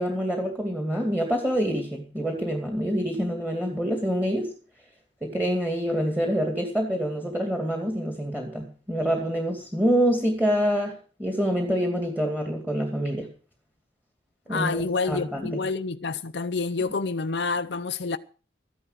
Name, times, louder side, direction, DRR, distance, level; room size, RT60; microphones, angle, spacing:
voice 1, 0.0-4.5 5.2-10.9 11.2-13.3 14.5-14.8 15.0-15.5, equal, 10° right, 2.4 m, -26 dB
voice 2, 14.5-18.2, left 4 dB, 60° left, 0.7 m, -28 dB
14.0 x 11.0 x 6.4 m
head